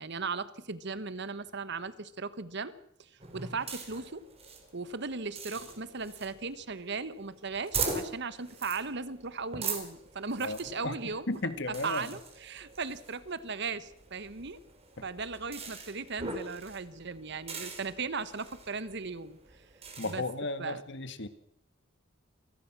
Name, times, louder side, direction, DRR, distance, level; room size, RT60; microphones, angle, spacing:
voice 1, 0.0-2.7 3.0-4.2 4.7-11.3 11.7-14.6 15.0-19.4 20.0-20.2 20.6-20.8, right 4 dB, 60° right, 15 dB, 1.3 m, -37 dB
sound 1, 3.2-20.1, right 4 dB, 30° right, 4.9 m, -42 dB
voice 2, 11.3-12.1 20.0-21.3, left 2 dB, 65° left, 11 dB, 1.8 m, -34 dB
27.5 x 19.0 x 6.1 m, 0.71 s
head